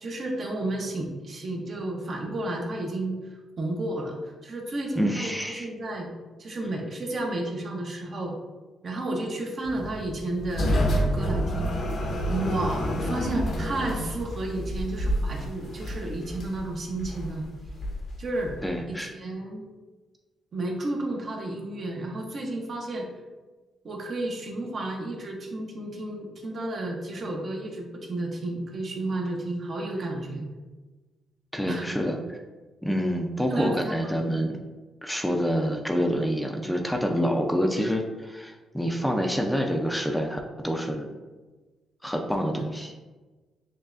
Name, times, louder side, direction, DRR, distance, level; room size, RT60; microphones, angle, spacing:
voice 1, 0.0-6.1 6.4-8.4 8.8-17.5 18.2-18.5 18.9-19.6 20.5-23.1 23.8-30.5 31.7-31.8 33.5-34.5 42.5-42.7, right 2 dB, 55° right, 0 dB, 0.9 m, -32 dB
voice 2, 5.0-5.7 18.6-19.1 31.5-32.4 32.8-34.5 35.0-41.1 42.0-42.9, equal, 5° left, 2 dB, 0.4 m, -27 dB
sound 1, 9.6-18.7, equal, 65° left, 0.7 m, -29 dB
6.4 x 2.3 x 2.5 m, 1.3 s
cardioid pair, 80°, 0 cm